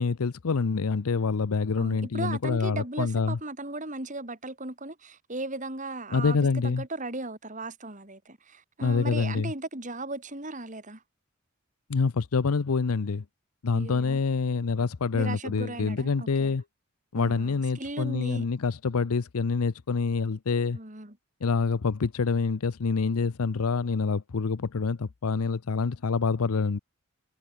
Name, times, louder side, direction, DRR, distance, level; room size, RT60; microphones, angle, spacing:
voice 1, 0.0-3.4 6.1-6.8 8.8-9.5 11.9-13.2 13.6-16.6 17.1-20.8 21.4-26.8, left 4 dB, 85° left, 0.6 m, -26 dB
voice 2, 1.8-11.0 13.7-14.2 15.1-16.5 17.1-18.5 20.7-21.2, right 2 dB, 35° right, 4.1 m, -37 dB
head